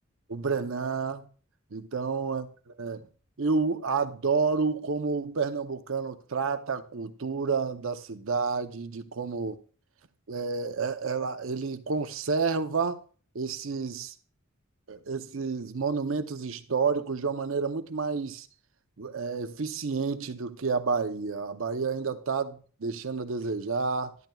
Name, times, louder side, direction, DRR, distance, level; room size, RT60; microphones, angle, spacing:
voice 1, 0.3-1.3 1.7-3.1 3.4-9.6 10.3-13.0 13.3-14.1 14.9-18.5 19.0-24.2, right 4 dB, 70° right, 0.7 m, -30 dB
12.0 x 12.0 x 2.3 m
head